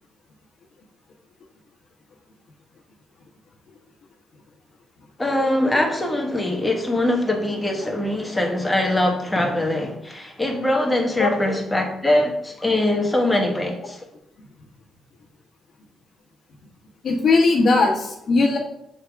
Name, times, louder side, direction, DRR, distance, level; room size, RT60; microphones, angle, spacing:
voice 1, 5.2-14.0, left 1 dB, 10° left, 1.3 m, -22 dB
voice 2, 17.0-18.6, left 3 dB, 55° left, 1.4 m, -18 dB
6.5 x 3.6 x 4.7 m
cardioid pair, 90°, 0 cm